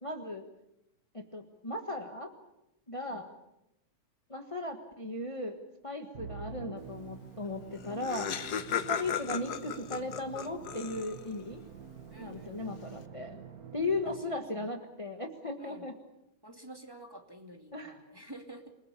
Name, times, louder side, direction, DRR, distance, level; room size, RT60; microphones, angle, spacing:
voice 1, 0.0-0.4 1.1-2.3 2.9-3.3 4.3-8.3 8.9-11.6 12.2-13.4 13.7-15.9 17.7-18.0, left 2 dB, 20° left, 4 dB, 0.8 m, -37 dB
Musical instrument, 6.1-14.7, right 7 dB, 70° right, 0.8 m, -47 dB
Laughter, 7.5-7.6 7.7-11.4, left 8 dB, 75° left, 0.9 m, -36 dB
voice 2, 12.1-12.8 14.0-14.7 15.6-15.9 16.4-18.8, right 1 dB, 10° right, 3 dB, 1.9 m, -50 dB
28.0 x 20.5 x 6.9 m, 0.87 s
omnidirectional pair, 3.3 m